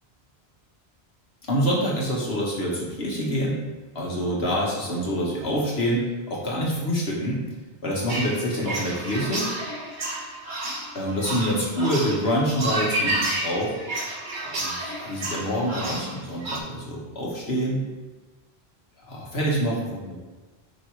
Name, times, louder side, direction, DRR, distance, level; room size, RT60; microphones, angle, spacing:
voice 1, 1.5-3.6 4.0-7.4 7.8-9.5 10.9-13.8 14.5-17.8 19.1-20.2, equal, 75° left, -4 dB, 1.8 m, -26 dB
sound 1, 8.1-16.6, right 1 dB, 50° right, 1.3 m, -30 dB
5.5 x 5.2 x 4.7 m, 1.2 s
omnidirectional pair, 1.1 m